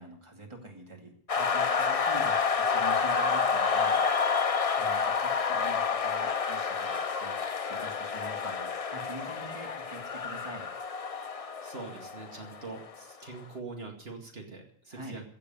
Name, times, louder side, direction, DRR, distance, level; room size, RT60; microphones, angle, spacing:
voice 1, 0.0-4.1 4.7-10.7 14.9-15.2, right 1 dB, 30° right, 1 dB, 2.5 m, -45 dB
sound 1, 1.3-13.0, left 5 dB, 40° left, 0.7 m, -29 dB
voice 2, 11.2-15.2, right 3 dB, 75° right, 1 dB, 2.6 m, -44 dB
15.5 x 7.0 x 9.3 m, 0.67 s
omnidirectional pair, 1.1 m